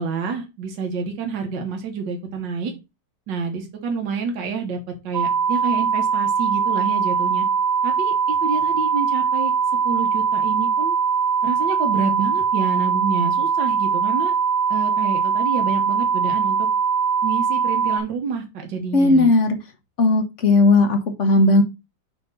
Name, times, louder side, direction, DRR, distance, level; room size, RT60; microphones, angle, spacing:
voice 1, 0.0-2.7 3.3-7.5 7.8-9.5 9.9-11.0 11.4-14.3 14.7-16.7 17.2-19.3, right 5 dB, 80° right, 3 dB, 1.8 m, -28 dB
sound 1, 5.1-18.0, right 6 dB, 20° right, 0.5 m, -21 dB
voice 2, 18.9-19.6 20.0-21.6, left 2 dB, 50° left, 6 dB, 1.1 m, -16 dB
6.9 x 3.0 x 5.3 m, 0.26 s
omnidirectional pair, 2.0 m